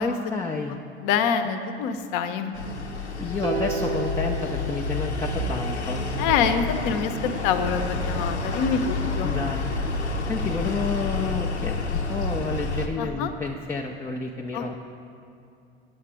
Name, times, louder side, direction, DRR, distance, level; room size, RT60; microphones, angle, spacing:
voice 1, 0.0-0.8 3.2-6.3 9.2-9.7 10.3-14.8, left 4 dB, 10° left, -1 dB, 0.3 m, -30 dB
voice 2, 0.7-2.5 6.2-7.1 7.4-9.4 13.0-13.3 14.5-14.6, left 6 dB, 50° left, 9 dB, 0.7 m, -26 dB
sound 1, 2.5-12.9, left 3 dB, 85° left, 0.7 m, -29 dB
sound 2, 3.4-5.7, right 3 dB, 85° right, 0.8 m, -32 dB
9.2 x 7.3 x 4.8 m, 2.6 s
figure-of-eight pair, 70°, 33 cm